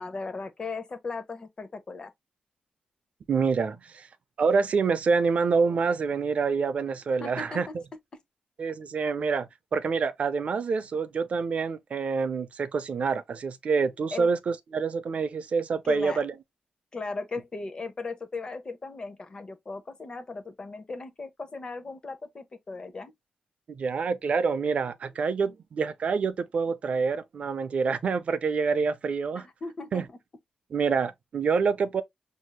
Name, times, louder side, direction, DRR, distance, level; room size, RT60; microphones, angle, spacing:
voice 1, 0.0-2.1 7.2-7.7 14.1-14.3 15.8-16.2 16.9-23.1 29.4-30.2, left 3 dB, 30° left, 0.8 m, -37 dB
voice 2, 3.3-4.1 4.4-7.8 8.6-16.3 23.7-29.5 29.9-30.0 30.7-32.0, right 5 dB, 50° right, 0.5 m, -27 dB
6.1 x 2.7 x 2.2 m
wide cardioid pair, 165°, 3 cm